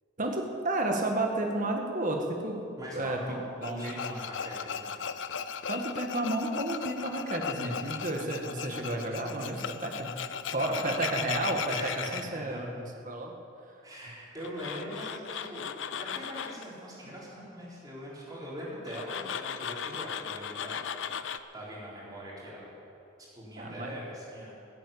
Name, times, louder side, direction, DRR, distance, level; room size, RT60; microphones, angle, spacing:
voice 1, 0.2-2.7 2.9-4.0 5.7-10.1 10.5-12.7 13.0-13.3 23.6-23.9, right 1 dB, 40° right, 2 dB, 1.7 m, -32 dB
voice 2, 2.8-4.9 10.7-11.0 11.7-12.6 13.8-15.7 16.0-20.9 21.5-22.7 23.2-24.6, equal, 20° right, -6 dB, 4.3 m, -42 dB
Tools, 3.6-12.2 14.4-16.6 18.9-21.4, left 7 dB, 70° left, 0.6 m, -37 dB
16.0 x 9.1 x 8.6 m, 2.7 s
head